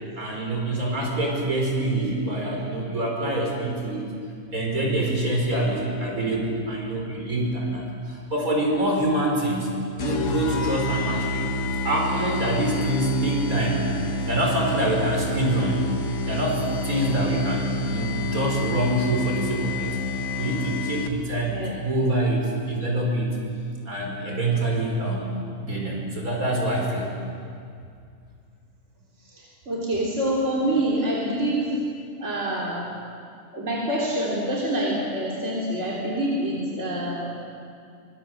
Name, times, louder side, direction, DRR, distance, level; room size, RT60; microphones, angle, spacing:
voice 1, 0.2-4.1 4.5-9.7 10.0-11.5 11.8-13.9 14.2-15.8 16.3-19.9 20.4-23.3 23.9-25.3 25.6-27.1, right 1 dB, 70° right, -1 dB, 5.6 m, -25 dB
sound 1, 10.0-21.4, left 2 dB, 60° left, 1.7 m, -29 dB
voice 2, 29.2-31.7 32.2-32.9 33.5-37.3, right 1 dB, 50° right, -5 dB, 3.8 m, -26 dB
25.0 x 21.0 x 7.9 m, 2.4 s
omnidirectional pair, 1.5 m